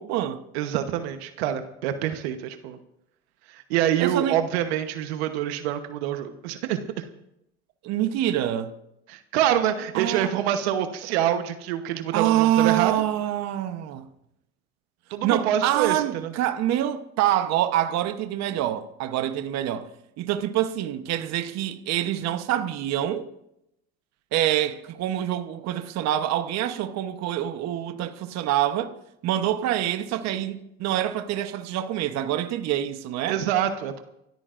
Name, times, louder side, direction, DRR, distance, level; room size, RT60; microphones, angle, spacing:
voice 1, 0.0-0.4 4.0-4.4 7.8-8.7 9.9-10.3 12.1-14.1 15.2-19.9 20.2-23.3 24.3-28.9 29.2-33.4, right 12 dB, 60° right, 1.0 m, -26 dB
voice 2, 0.5-2.8 3.5-7.0 9.1-13.0 15.1-16.3 33.3-34.0, right 10 dB, 85° right, 1.1 m, -26 dB
29.0 x 13.5 x 2.5 m
supercardioid pair, 90°, 30 cm